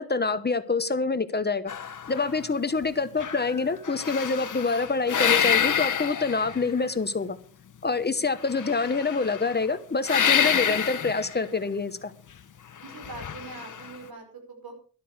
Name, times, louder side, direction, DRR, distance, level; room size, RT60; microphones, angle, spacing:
voice 1, 0.0-1.7 2.1-7.4 7.8-12.1, left 4 dB, 30° left, 12 dB, 0.9 m, -26 dB
sound 1, 1.7-2.9 3.2-6.9 8.5-9.6 10.0-11.4 12.8-14.0, left 8 dB, 60° left, 1.0 m, -27 dB
voice 2, 12.8-14.7, right 3 dB, 85° right, 4 dB, 5.2 m, -42 dB
12.5 x 12.0 x 4.9 m, 0.41 s
wide cardioid pair, 145°, 35 cm